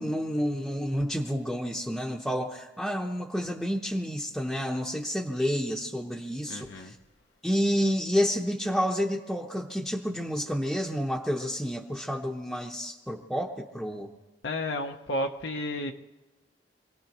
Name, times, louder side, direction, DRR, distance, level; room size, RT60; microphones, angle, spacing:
voice 1, 0.0-7.0 7.4-14.1, equal, ahead, -1 dB, 0.8 m, -29 dB
voice 2, 6.5-6.9 14.4-15.9, left 1 dB, 80° left, 2 dB, 0.9 m, -32 dB
26.5 x 18.0 x 3.0 m, 1.2 s
head